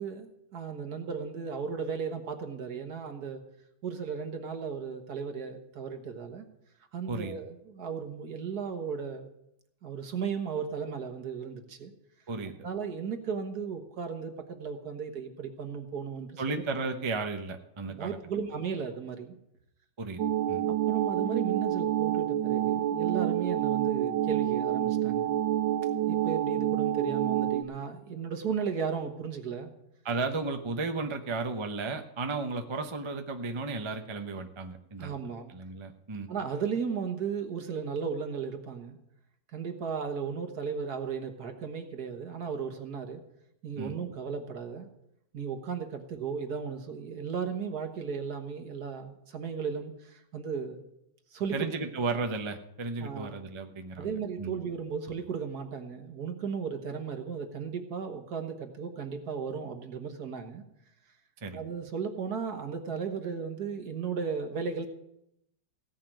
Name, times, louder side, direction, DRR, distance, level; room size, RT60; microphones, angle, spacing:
voice 1, 0.0-3.4 3.8-6.5 6.9-9.3 9.8-11.9 12.6-16.6 17.9-19.3 20.9-25.3 26.1-29.7 35.0-35.5 36.3-39.0 39.5-43.2 43.6-44.9 45.3-50.9 51.3-51.7 53.0-53.4 54.0-60.6 61.5-64.9, right 6 dB, 60° right, 5 dB, 1.8 m, -35 dB
voice 2, 16.4-18.2 20.0-20.2 20.5-20.6 30.0-35.1 35.5-36.3 43.8-43.9 51.5-54.1 54.4-54.5 61.4-61.6, right 3 dB, 25° right, 5 dB, 0.6 m, -34 dB
sound 1, 20.2-27.6, right 12 dB, 90° right, 1.5 m, -28 dB
17.0 x 5.7 x 9.0 m, 0.80 s
omnidirectional pair, 1.9 m